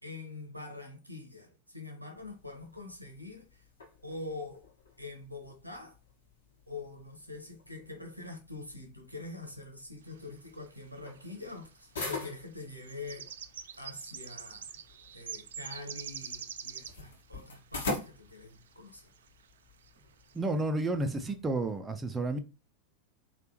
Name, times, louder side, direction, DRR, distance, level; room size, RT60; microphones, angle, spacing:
voice 1, 0.0-3.7 4.0-4.7 5.0-6.0 6.7-13.3 13.8-14.7 15.1-19.1, left 3 dB, 90° right, 1.0 m, -44 dB
sound 1, 2.1-21.8, left 3 dB, 65° left, 1.4 m, -46 dB
sound 2, 10.6-10.7 11.0-11.6 12.4-17.1 18.0-18.1 18.6-18.7 19.1-19.4 19.8-19.9 20.2-20.5, right 8 dB, 65° right, 0.4 m, -44 dB
voice 2, 20.3-22.4, right 2 dB, 15° right, 0.5 m, -31 dB
4.1 x 3.4 x 2.9 m
figure-of-eight pair, 90°, 0 cm